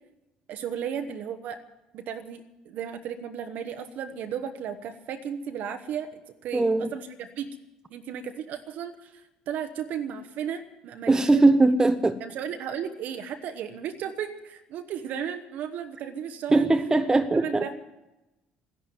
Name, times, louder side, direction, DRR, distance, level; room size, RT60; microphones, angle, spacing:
voice 1, 0.5-1.6 1.9-6.1 6.4-7.5 7.9-11.4 12.2-16.7 17.3-17.8, right 8 dB, 60° right, 7 dB, 1.1 m, -35 dB
voice 2, 6.5-6.9 11.1-12.2 16.5-17.6, right 2 dB, 20° right, 8 dB, 0.9 m, -20 dB
14.0 x 11.0 x 9.6 m, 0.99 s
hypercardioid pair, 60°, 3 cm